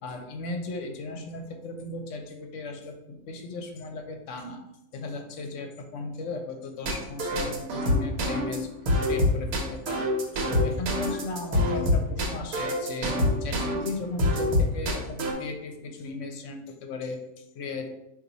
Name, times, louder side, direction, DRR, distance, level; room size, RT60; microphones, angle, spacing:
voice 1, 0.0-4.6 4.9-8.7 9.1-10.1 10.4-17.9, left 3 dB, 65° left, 5 dB, 0.9 m, -36 dB
sound 1, 6.8-13.9 14.2-15.3, left 1 dB, 80° right, 1.3 m, -25 dB
4.0 x 2.7 x 3.9 m, 0.90 s
omnidirectional pair, 1.5 m